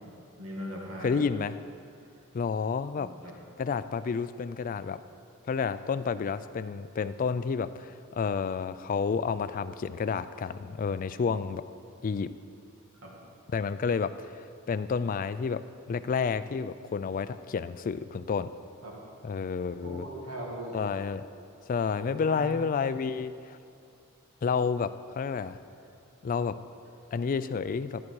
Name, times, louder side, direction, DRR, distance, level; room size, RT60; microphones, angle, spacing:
voice 1, 0.4-1.2 3.0-3.3 13.0-13.1 18.8-18.9 19.8-20.8 22.0-22.6, right 1 dB, 75° right, -3 dB, 2.1 m, -39 dB
voice 2, 1.0-1.5 2.3-3.1 3.6-5.0 5.5-11.6 12.0-12.3 13.5-14.3 14.7-15.6 15.9-18.5 19.2-20.1 20.7-21.2 21.7-23.3 24.4-25.6 26.2-26.5 27.1-28.0, left 5 dB, 40° left, 13 dB, 0.3 m, -30 dB
13.0 x 8.5 x 4.7 m, 2.5 s
head